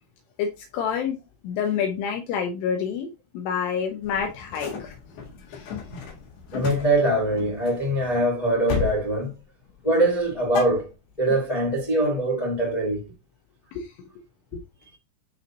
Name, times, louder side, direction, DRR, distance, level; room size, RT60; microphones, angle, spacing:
voice 1, 0.7-1.2 1.4-3.1 3.3-4.9 5.5-5.7 13.7-13.9, left 7 dB, 80° left, 2.4 m, -27 dB
sound 1, 4.0-8.2 8.7-9.0 9.3-9.8 10.1-11.4, left 7 dB, 60° left, 3.2 m, -34 dB
voice 2, 6.5-9.3 9.8-10.9 11.2-13.0, right 1 dB, 10° left, 1.6 m, -23 dB
9.6 x 3.2 x 4.0 m
omnidirectional pair, 5.7 m